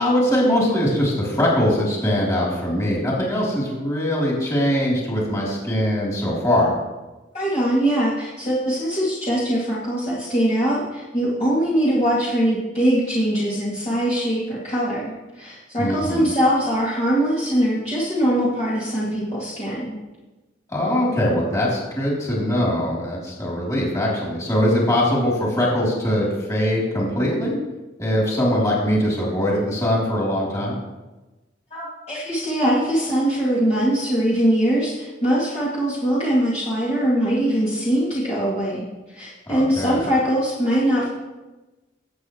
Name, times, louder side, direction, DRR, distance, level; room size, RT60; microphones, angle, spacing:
voice 1, 0.0-6.7 15.8-16.2 20.7-27.6 28.0-30.8 39.5-40.1, left 1 dB, 15° left, -5 dB, 3.5 m, -22 dB
voice 2, 7.3-20.0 31.7-41.1, equal, 35° left, -9 dB, 2.6 m, -22 dB
20.0 x 8.3 x 3.2 m, 1.1 s
head